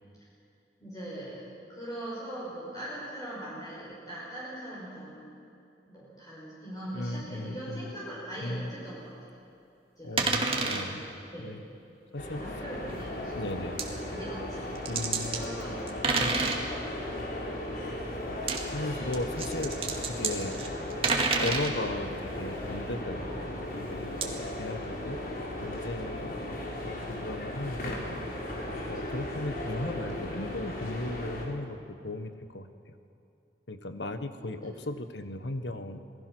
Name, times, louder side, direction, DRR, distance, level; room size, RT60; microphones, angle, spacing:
voice 1, 0.8-1.4 1.7-5.3 5.9-9.1 10.0-11.0 11.3-11.6 12.2-13.3 14.1-14.6 15.3-16.3 28.9-29.0 34.4-34.5, right 1 dB, 20° left, -8 dB, 5.6 m, -41 dB
voice 2, 6.9-7.9 8.4-8.7 10.0-11.0 11.4-11.6 12.1-12.4 13.3-13.8 14.8-15.5 16.1-16.6 18.7-20.6 21.4-25.2 25.6-28.0 28.9-31.8 32.0-32.9 33.7-36.0, left 2 dB, 80° left, 9 dB, 1.4 m, -36 dB
sound 1, 10.2-10.8 12.9-13.0 13.8-13.9 14.8-15.4 15.9-16.6 18.3-18.6 19.1-21.7 24.2-24.3, right 4 dB, 30° right, 2.2 m, -28 dB
sound 2, 12.2-31.5, left 1 dB, 55° left, 4.0 m, -36 dB
27.5 x 19.5 x 6.3 m, 2.6 s
head